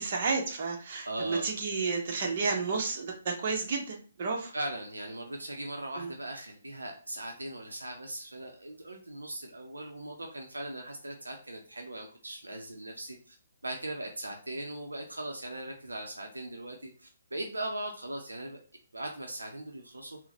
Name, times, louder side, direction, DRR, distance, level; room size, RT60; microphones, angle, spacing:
voice 1, 0.0-4.5 6.0-6.1, right 4 dB, 45° right, 1 dB, 0.8 m, -31 dB
voice 2, 1.1-1.5 4.5-13.4 13.6-18.6 18.9-20.2, right 1 dB, 80° right, 2 dB, 0.6 m, -39 dB
3.8 x 2.1 x 2.8 m, 0.40 s
figure-of-eight pair, 135°, 0 cm